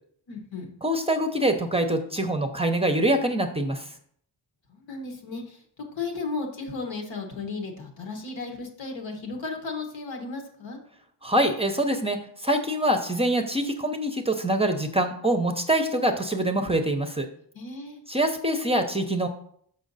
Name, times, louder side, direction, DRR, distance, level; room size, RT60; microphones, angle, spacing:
voice 1, 0.3-0.7 4.7-10.8 17.5-18.0, left 3 dB, 80° left, 3 dB, 1.5 m, -35 dB
voice 2, 0.8-3.9 11.2-17.3 18.1-19.3, right 1 dB, 15° right, 5 dB, 0.6 m, -24 dB
6.3 x 5.6 x 4.0 m, 0.64 s
wide cardioid pair, 125°, 45 cm